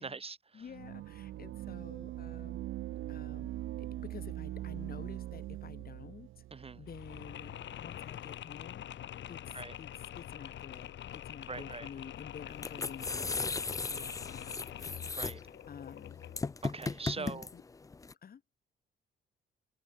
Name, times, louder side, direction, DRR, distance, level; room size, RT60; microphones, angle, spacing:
voice 1, 0.0-0.6 6.5-6.8 9.5-9.8 11.5-11.9 15.2-15.4 16.6-17.5, right 4 dB, 30° right, 2.2 m, -42 dB
voice 2, 0.5-2.6 3.1-3.5 3.8-8.9 9.3-14.9 15.2-16.2 17.2-17.6 18.2-18.4, left 7 dB, 50° left, 3.3 m, -50 dB
sound 1, 0.7-7.8, right 14 dB, 80° right, 1.7 m, -42 dB
Mechanisms, 6.9-16.6, left 11 dB, 65° left, 2.4 m, -45 dB
sound 2, 12.5-18.1, left 4 dB, 15° left, 0.5 m, -37 dB
cardioid pair, 90°, 20 cm